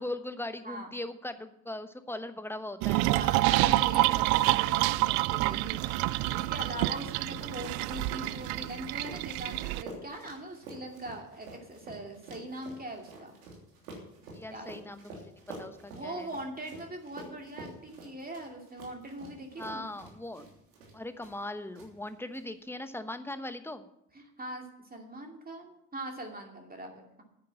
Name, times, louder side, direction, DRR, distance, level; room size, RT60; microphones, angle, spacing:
voice 1, 0.0-3.1 14.3-16.3 19.6-20.5 20.9-23.9, left 1 dB, 5° left, 10 dB, 1.2 m, -39 dB
sound 1, 2.8-9.8, right 19 dB, 55° right, 0.5 m, -27 dB
voice 2, 3.0-13.4 14.5-14.7 15.9-19.8 24.1-27.2, right 1 dB, 20° right, 2 dB, 2.6 m, -42 dB
sound 2, 4.9-21.5 21.7-22.4, right 2 dB, 75° right, 3.3 m, -49 dB
9.8 x 9.5 x 7.4 m, 0.80 s
hypercardioid pair, 60°, 45 cm